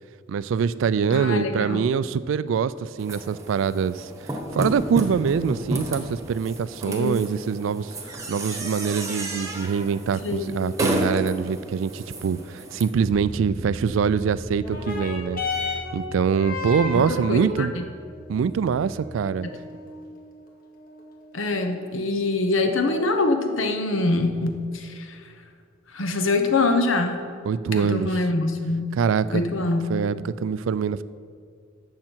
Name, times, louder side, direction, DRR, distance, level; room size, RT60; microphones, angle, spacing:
voice 1, 0.3-4.1 4.5-15.4 15.9-17.7 18.3-19.5 27.4-28.1 28.9-29.4 29.9-31.0, right 6 dB, 75° right, 16 dB, 0.3 m, -24 dB
voice 2, 1.1-1.9 6.8-7.2 10.2-10.5 16.9-17.9 19.4-19.6 21.3-25.2 25.9-27.2 27.7-28.9 29.3-29.9, left 2 dB, 80° left, 6 dB, 0.9 m, -24 dB
sound 1, 3.0-12.8, right 1 dB, 15° right, 1.1 m, -32 dB
Bass guitar, 13.0-19.2, right 1 dB, 5° left, 0.7 m, -39 dB
sound 2, 14.6-23.5 24.4-24.5, left 3 dB, 45° left, 1.7 m, -35 dB
11.5 x 7.5 x 4.5 m, 2.2 s
head